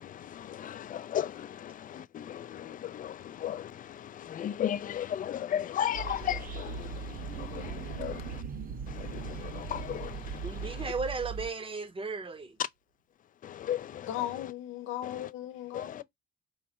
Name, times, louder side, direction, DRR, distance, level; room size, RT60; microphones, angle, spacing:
voice 1, 0.3-3.7 4.2-7.1 7.4-8.2 8.9-10.2 13.4-14.1 15.7-16.0, left 10 dB, 45° left, 0.4 m, -35 dB
sound 1, 5.9-11.5, right 5 dB, 45° right, 0.5 m, -40 dB
sound 2, 6.6-11.6, right 8 dB, 70° right, 1.3 m, -45 dB
voice 2, 10.4-12.6, right 4 dB, 25° right, 0.8 m, -35 dB
voice 3, 14.0-16.0, left 13 dB, 85° left, 0.8 m, -37 dB
4.6 x 2.1 x 4.1 m
cardioid pair, 90°, 20 cm